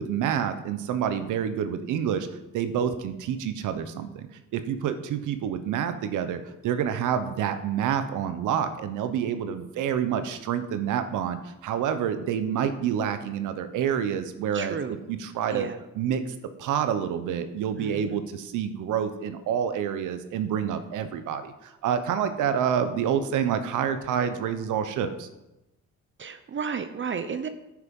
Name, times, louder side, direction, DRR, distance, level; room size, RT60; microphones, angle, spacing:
voice 1, 0.0-2.3 2.5-4.3 4.5-14.8 15.1-15.7 16.0-16.3 16.6-25.3, right 8 dB, 90° right, 10 dB, 1.1 m, -28 dB
voice 2, 14.5-15.0 15.5-15.8 17.8-18.2 26.2-27.5, right 6 dB, 40° right, 10 dB, 0.8 m, -33 dB
9.6 x 8.5 x 5.5 m, 0.96 s
cardioid pair, 90°, 30 cm